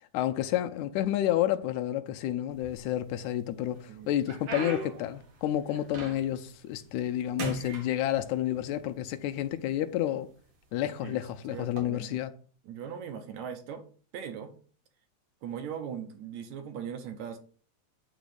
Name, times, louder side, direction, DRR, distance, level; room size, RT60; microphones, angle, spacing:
voice 1, 0.0-10.3 10.7-12.3, left 12 dB, 85° left, 2.0 m, -30 dB
sound 1, 2.5-3.3 3.8-6.5 6.9-7.1 7.4-8.6 9.4-9.5 10.2-10.4 11.6-11.8, right 3 dB, 50° right, 1.7 m, -39 dB
voice 2, 11.5-12.2 12.7-13.8 14.1-14.5 15.4-17.4, right 8 dB, 75° right, 2.2 m, -39 dB
8.9 x 3.0 x 6.5 m
omnidirectional pair, 3.3 m